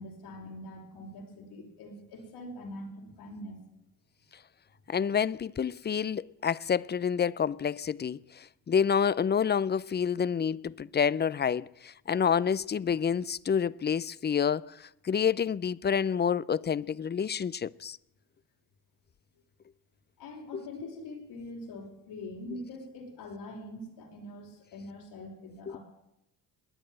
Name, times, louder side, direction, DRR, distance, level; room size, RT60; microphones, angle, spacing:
voice 1, 0.0-3.6 20.2-25.8, left 1 dB, 80° left, 5.3 m, -43 dB
voice 2, 4.9-18.0 20.5-20.6 25.7-25.8, left 7 dB, 25° left, 0.5 m, -28 dB
20.5 x 9.1 x 7.7 m
supercardioid pair, 70°, 39 cm